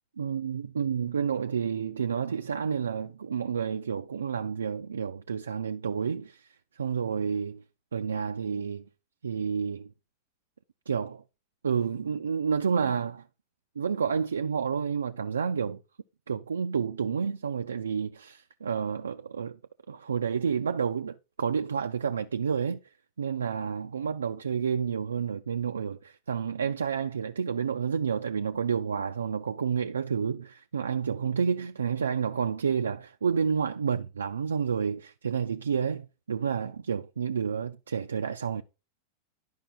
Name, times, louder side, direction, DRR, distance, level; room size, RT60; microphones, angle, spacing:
voice 1, 0.2-7.6 7.9-8.9 9.2-9.9 10.9-11.2 11.6-13.2 13.8-15.8 16.3-19.6 19.9-22.8 23.2-38.6, right 6 dB, 70° right, 0.4 m, -30 dB
11.0 x 5.4 x 4.2 m
figure-of-eight pair, 90°, 0 cm